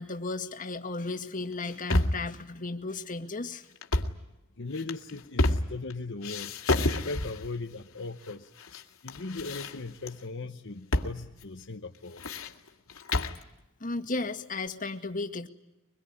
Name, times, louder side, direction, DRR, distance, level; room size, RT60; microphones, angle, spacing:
voice 1, 0.0-3.7 13.8-15.5, left 3 dB, 40° left, 5 dB, 1.9 m, -34 dB
sound 1, 1.5-2.3 3.8-4.2 4.7-5.9 6.2-7.5 8.2-8.8 9.1-10.1 10.9-11.2 11.4-11.5 11.9-13.4, left 2 dB, 85° left, 2.2 m, -29 dB
voice 2, 4.6-6.6 7.0-8.5 9.0-12.2, left 3 dB, 60° left, 4 dB, 1.1 m, -38 dB
24.0 x 21.5 x 9.9 m, 0.91 s
head